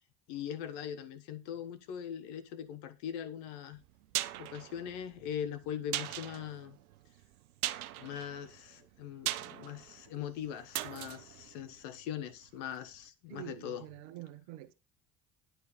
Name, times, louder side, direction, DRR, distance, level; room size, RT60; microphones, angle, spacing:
voice 1, 0.3-3.8 4.4-6.8 8.0-13.8, left 9 dB, 70° left, 1.4 m, -41 dB
sound 1, 3.7-12.6 12.9-13.0, right 14 dB, 90° right, 0.6 m, -40 dB
voice 2, 13.3-14.7, right 15 dB, 70° right, 1.1 m, -47 dB
10.5 x 4.7 x 6.8 m
hypercardioid pair, 60°, 42 cm